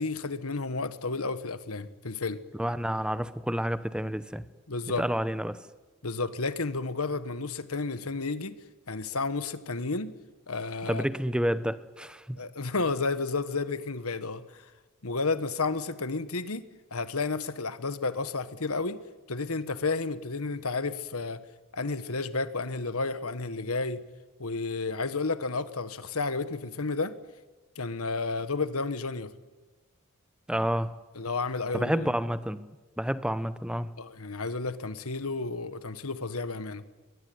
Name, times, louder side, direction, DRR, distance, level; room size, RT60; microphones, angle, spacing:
voice 1, 0.0-2.4 4.7-5.1 6.0-8.6 8.9-10.1 10.5-11.1 12.4-14.6 15.0-19.0 19.3-21.4 21.7-24.0 24.4-27.1 27.8-29.3 31.1-32.1 34.0-36.8, left 3 dB, 85° left, 1.5 m, -31 dB
voice 2, 2.5-4.4 5.0-5.6 10.9-12.4 30.5-31.0 31.7-32.7 33.0-33.9, equal, 5° right, 0.9 m, -29 dB
22.5 x 22.0 x 9.5 m
head